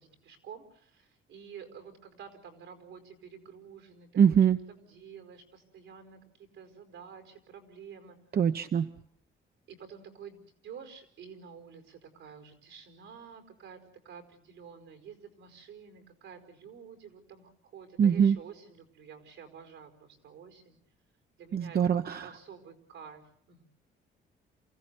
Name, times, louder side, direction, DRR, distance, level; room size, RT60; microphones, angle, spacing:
voice 1, 0.0-4.4 4.7-8.2 9.7-13.8 14.0-20.8 21.4-23.6, right 7 dB, 85° right, 7 dB, 5.0 m, -49 dB
voice 2, 4.2-4.6 8.3-8.9 18.0-18.4 21.5-22.3, right 7 dB, 50° right, 9 dB, 0.9 m, -23 dB
28.0 x 16.0 x 8.2 m, 0.62 s
cardioid pair, 90°, 20 cm